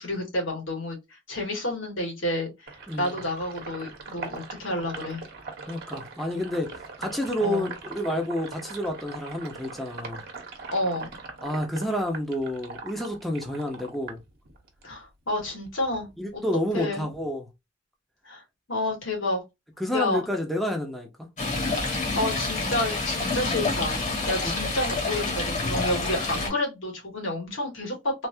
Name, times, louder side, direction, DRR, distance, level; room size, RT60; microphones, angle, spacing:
voice 1, 0.0-5.2 7.4-7.7 10.7-11.1 14.8-16.4 16.7-17.1 18.2-18.4 18.7-19.4 19.9-20.2 22.2-24.0 24.3-28.1, left 1 dB, 90° left, 1.9 m, -30 dB
Sink (filling or washing), 2.7-14.9 15.3-16.7, right 4 dB, 55° right, 1.0 m, -41 dB
voice 2, 2.9-3.2 5.7-10.2 11.4-14.2 16.2-17.5 19.8-21.1 24.4-24.5, left 1 dB, ahead, 0.7 m, -29 dB
Stream, 21.4-26.5, left 3 dB, 40° left, 1.3 m, -28 dB
3.4 x 2.6 x 2.7 m
head